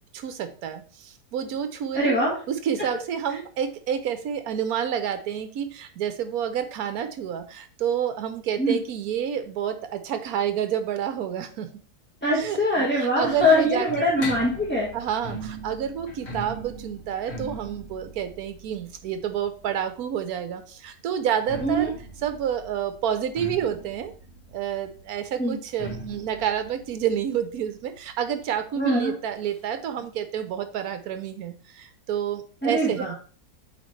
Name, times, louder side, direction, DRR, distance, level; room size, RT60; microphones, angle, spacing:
voice 1, 0.2-0.8 1.3-2.1 2.5-11.7 12.3-13.9 14.2-14.3 14.9-21.9 22.2-24.1 24.5-31.5 32.1-33.2, right 9 dB, 75° right, 8 dB, 1.2 m, -29 dB
voice 2, 1.9-2.4 8.6-8.8 12.2-14.9 21.6-21.9 25.4-25.6 28.8-29.1 32.6-33.2, equal, 5° left, -5 dB, 1.3 m, -22 dB
sound 1, 12.4-20.1 21.2-28.6 28.9-29.0 29.2-29.3 30.0-30.1, right 1 dB, 45° left, 1.6 m, -40 dB
8.5 x 3.5 x 3.2 m, 0.40 s
omnidirectional pair, 1.7 m